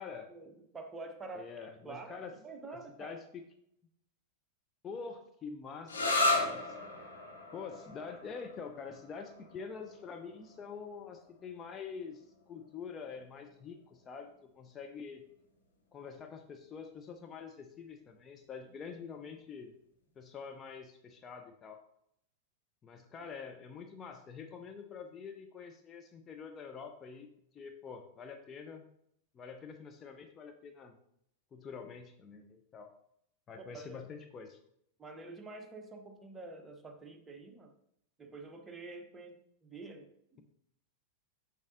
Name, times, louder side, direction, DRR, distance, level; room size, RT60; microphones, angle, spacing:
voice 1, 0.3-1.5 1.8-3.2 33.7-34.1 35.0-37.7 38.2-40.4, right 3 dB, 15° right, 4 dB, 0.9 m, -47 dB
voice 2, 1.3-2.3 2.6-3.4 4.8-6.8 7.5-15.2 15.9-19.7 20.2-21.8 22.8-27.3 27.5-28.9 29.3-30.9 31.5-32.9 33.5-34.6, left 5 dB, 25° left, 5 dB, 0.6 m, -46 dB
sound 1, 5.9-13.3, left 2 dB, 75° left, 1.2 m, -36 dB
7.0 x 6.6 x 2.6 m, 0.74 s
figure-of-eight pair, 90°, 0 cm